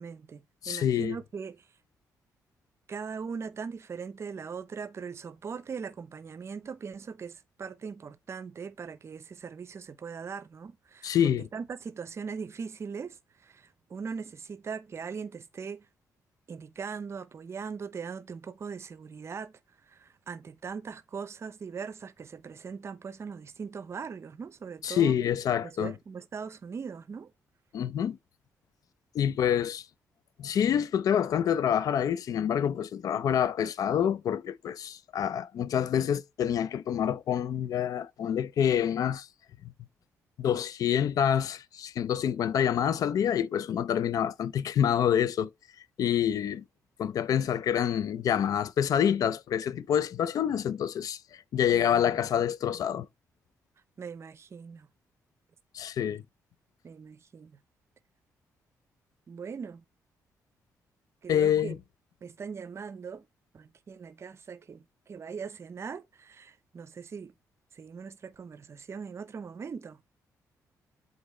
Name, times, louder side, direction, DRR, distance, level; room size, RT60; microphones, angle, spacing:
voice 1, 0.0-1.6 2.9-11.1 11.4-15.9 16.5-19.5 19.9-25.1 25.6-27.3 51.7-52.2 54.0-54.9 56.8-57.6 59.3-59.8 61.2-61.8 62.2-63.2 63.5-67.3 67.7-70.0, right 6 dB, 45° right, 0.6 m, -40 dB
voice 2, 0.6-1.1 11.0-11.5 24.8-25.9 27.7-28.2 29.1-29.8 30.4-39.3 40.4-45.5 46.0-46.6 47.0-51.2 51.5-53.1 55.7-56.2 61.3-61.8, left 9 dB, 65° left, 0.5 m, -27 dB
7.9 x 4.0 x 3.1 m
cardioid pair, 95°, 6 cm